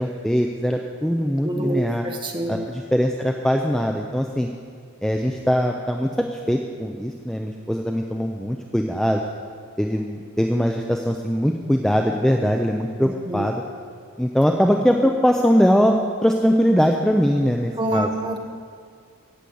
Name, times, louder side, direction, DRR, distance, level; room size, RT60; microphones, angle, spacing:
voice 1, 0.0-2.0 2.5-4.5 5.0-9.2 9.8-13.6 14.2-18.1, equal, ahead, 2 dB, 0.5 m, -21 dB
voice 2, 1.4-2.6 13.0-13.5 17.8-18.4, right 1 dB, 20° right, 2 dB, 1.2 m, -27 dB
17.0 x 6.8 x 7.8 m, 2.1 s
head